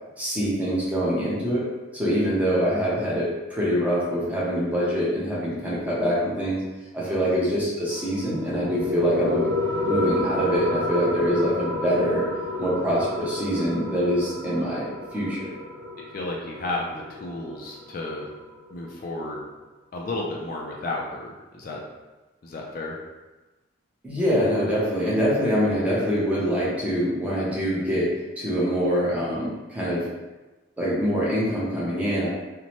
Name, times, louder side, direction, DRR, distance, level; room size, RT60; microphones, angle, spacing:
voice 1, 0.2-1.7 1.9-6.6 6.9-9.5 9.8-12.2 12.6-15.5 24.0-30.1 30.8-32.3, equal, 10° right, -8 dB, 0.7 m, -24 dB
sound 1, 7.9-18.9, left 1 dB, 75° right, 0.7 m, -30 dB
voice 2, 16.0-18.3 18.7-19.5 19.9-21.8 22.4-23.0, left 2 dB, 50° left, -1 dB, 0.3 m, -32 dB
2.7 x 2.1 x 2.9 m, 1.1 s
head